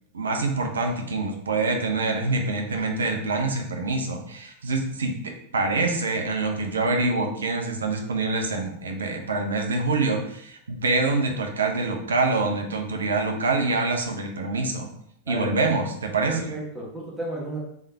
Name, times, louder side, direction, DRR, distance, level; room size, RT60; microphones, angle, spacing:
voice 1, 0.1-14.9 15.3-16.5, right 3 dB, 70° right, 3 dB, 0.6 m, -25 dB
voice 2, 15.2-15.6 16.3-17.6, right 1 dB, 5° right, -5 dB, 1.3 m, -33 dB
3.5 x 3.4 x 2.8 m, 0.71 s
figure-of-eight pair, 90°, 0 cm